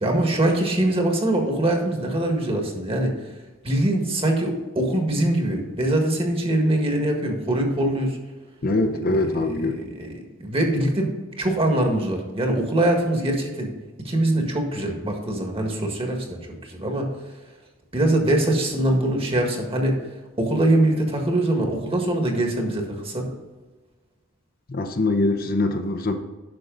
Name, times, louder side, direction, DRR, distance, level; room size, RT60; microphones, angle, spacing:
voice 1, 0.0-3.1 3.6-8.2 9.1-10.1 10.4-11.1 11.4-13.7 14.0-17.1 17.9-20.0 20.4-23.3, right 1 dB, 30° right, 2 dB, 1.7 m, -23 dB
voice 2, 8.6-9.8 24.7-26.1, left 2 dB, 45° left, 5 dB, 0.7 m, -23 dB
9.7 x 6.3 x 3.9 m, 1.2 s
head